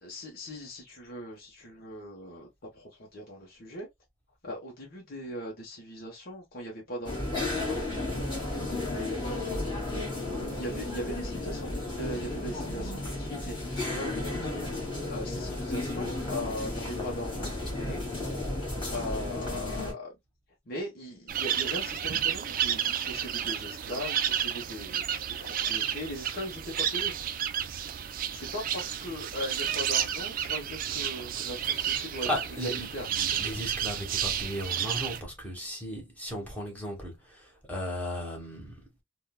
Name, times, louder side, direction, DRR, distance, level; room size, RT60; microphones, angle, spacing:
voice 1, 0.0-2.5 2.7-3.9 4.4-9.6 10.4-14.7 15.1-18.1 18.9-20.1 20.6-27.1 28.3-32.3 32.6-33.1, equal, 50° left, 1.0 m, -39 dB
sound 1, 7.0-19.9, left 2 dB, 25° left, 1.8 m, -33 dB
sound 2, 21.3-35.2, right 9 dB, 45° right, 0.3 m, -31 dB
voice 2, 32.2-32.9 33.2-38.8, equal, 10° left, 1.1 m, -36 dB
3.7 x 2.3 x 2.2 m
head